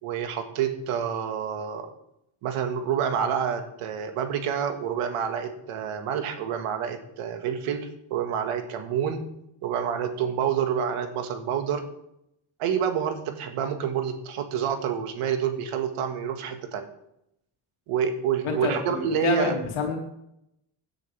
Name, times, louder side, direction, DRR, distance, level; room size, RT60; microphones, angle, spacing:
voice 1, 0.0-1.9 2.4-9.2 9.6-11.8 12.6-16.9 17.9-19.6, right 8 dB, 85° right, 6 dB, 1.8 m, -28 dB
voice 2, 18.4-20.0, left 4 dB, 70° left, 0 dB, 2.9 m, -28 dB
16.5 x 9.8 x 3.4 m, 0.79 s
cardioid pair, 120°, 50 cm